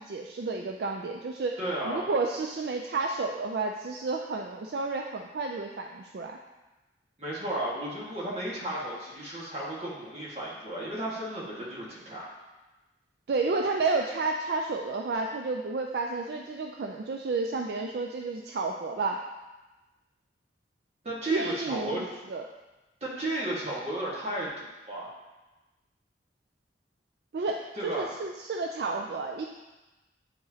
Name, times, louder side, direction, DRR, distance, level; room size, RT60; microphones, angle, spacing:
voice 1, 0.0-1.6 1.8-6.4 13.3-19.2 21.3-22.0 22.3-22.5 27.3-29.5, right 3 dB, 60° right, 2 dB, 0.4 m, -31 dB
voice 2, 1.6-2.1 7.2-12.3 21.0-22.1 23.0-25.1 27.8-28.1, right 1 dB, 35° right, -6 dB, 1.6 m, -34 dB
9.0 x 4.8 x 2.8 m, 1.1 s
head